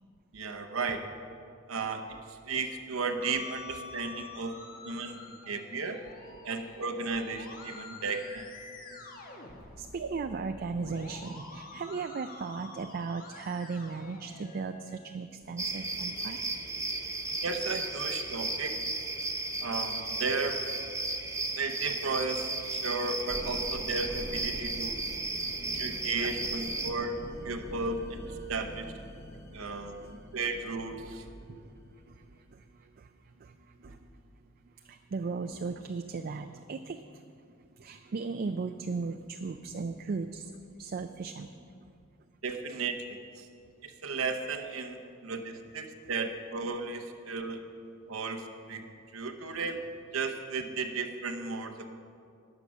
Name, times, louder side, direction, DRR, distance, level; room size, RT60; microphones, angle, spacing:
voice 1, 0.3-1.0 1.7-4.6 4.8-6.0 6.4-8.5 10.0-10.1 17.4-18.8 19.6-20.6 21.5-25.0 25.6-28.9 29.5-31.3 33.8-34.0 42.4-43.0 43.4-43.5 43.8-47.6 48.1-48.8 49.1-49.8 50.1-51.9, right 4 dB, 90° right, 5 dB, 0.9 m, -34 dB
Musical instrument, 3.2-15.2, left 3 dB, 45° left, 1.2 m, -48 dB
voice 2, 7.6-8.0 8.6-16.4 24.7-26.1 26.4-26.5 26.8-26.9 29.3-30.3 31.4-41.9 42.2-42.3 48.1-48.2 48.9-49.0, right 4 dB, 45° right, 7 dB, 0.4 m, -39 dB
sound 1, 15.6-26.9, right 2 dB, 15° right, 0.8 m, -34 dB
sound 2, 23.3-32.1, equal, 15° left, 0.9 m, -46 dB
12.0 x 8.3 x 6.2 m, 2.3 s
head